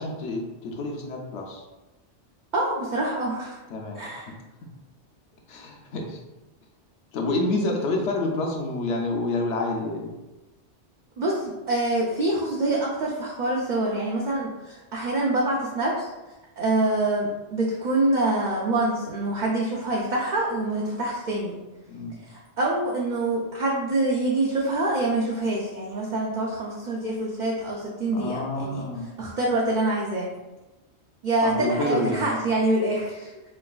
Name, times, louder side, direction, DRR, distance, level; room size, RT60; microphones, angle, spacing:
voice 1, 0.0-1.6 3.7-4.2 5.5-6.2 7.1-10.1 21.9-22.2 28.1-29.1 31.4-32.3, left 2 dB, 75° left, 0 dB, 0.9 m, -28 dB
voice 2, 2.5-3.6 4.0-4.3 11.2-16.1 16.6-21.5 22.2-28.8 29.2-30.3 31.2-33.3, right 2 dB, 60° right, -3 dB, 0.5 m, -25 dB
4.5 x 2.2 x 2.3 m, 1.1 s
omnidirectional pair, 1.2 m